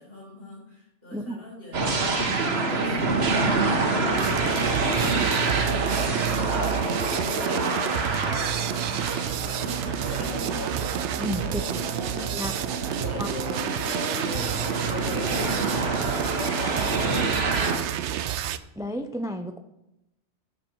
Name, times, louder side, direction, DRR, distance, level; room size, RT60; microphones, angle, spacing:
voice 1, 0.0-3.2 3.5-10.4 11.4-12.6 12.8-15.3 15.7-18.0, left 2 dB, 55° left, -4 dB, 4.6 m, -45 dB
sound 1, 1.7-10.8 11.3-11.4 12.9-17.8, right 3 dB, 60° right, 1.5 m, -27 dB
sound 2, 4.1-18.6, right 11 dB, 80° right, 0.9 m, -30 dB
sound 3, 5.7-17.3, equal, 20° left, 2.5 m, -35 dB
voice 2, 11.2-11.8 12.3-12.5 13.2-13.3 18.8-19.6, equal, 5° right, 8 dB, 0.3 m, -32 dB
12.0 x 7.6 x 4.5 m, 0.90 s
omnidirectional pair, 1.2 m